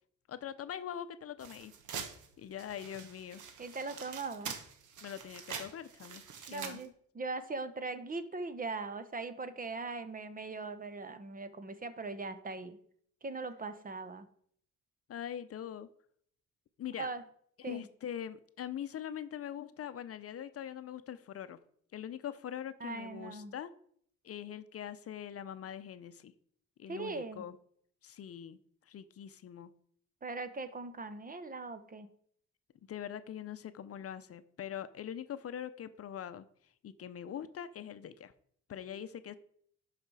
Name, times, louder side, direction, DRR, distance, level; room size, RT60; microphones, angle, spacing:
voice 1, 0.3-1.7 2.4-3.4 5.0-6.2 6.5-6.8 15.1-15.9 16.8-17.1 17.6-21.6 21.9-23.7 24.2-26.3 26.8-27.6 28.0-28.6 28.9-29.7 32.9-36.4 36.8-38.3 38.7-39.4, left 9 dB, 50° left, 12 dB, 0.7 m, -43 dB
sound 1, 1.4-6.8, right 6 dB, 75° right, 1.4 m, -45 dB
voice 2, 3.6-4.5 6.5-12.8 13.2-14.3 17.0-17.2 17.6-17.9 22.8-23.5 26.9-27.5 30.2-32.1, right 3 dB, 30° right, 12 dB, 0.9 m, -40 dB
11.5 x 5.0 x 4.8 m, 0.63 s
cardioid pair, 90°, 30 cm